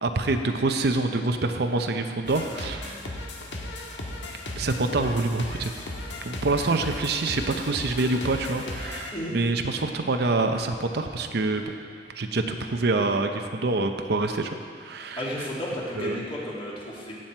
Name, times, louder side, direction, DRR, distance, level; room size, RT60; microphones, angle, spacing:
voice 1, 0.0-3.0 4.6-5.7 6.2-11.7 12.1-14.5 14.8-15.2 16.0-16.2, right 3 dB, 65° right, 5 dB, 0.7 m, -26 dB
sound 1, 2.3-9.1, left 1 dB, 90° left, 1.5 m, -36 dB
voice 2, 15.2-17.1, equal, 30° left, -5 dB, 2.4 m, -33 dB
16.0 x 7.6 x 4.4 m, 2.3 s
head